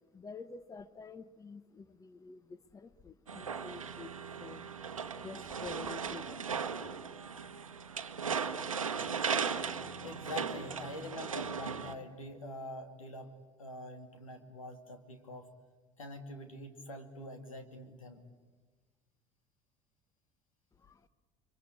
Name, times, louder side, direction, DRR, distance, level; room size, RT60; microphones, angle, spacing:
voice 1, 0.1-4.1 4.4-4.7 5.2-6.5 20.8-21.0, left 5 dB, 20° left, 15 dB, 1.0 m, -48 dB
sound 1, 3.3-11.9, right 6 dB, 85° right, 1.1 m, -37 dB
voice 2, 10.0-13.3 13.6-15.5 16.0-18.2, left 1 dB, 80° left, 6 dB, 2.5 m, -45 dB
29.0 x 23.5 x 8.7 m, 1.3 s
figure-of-eight pair, 65°, 17 cm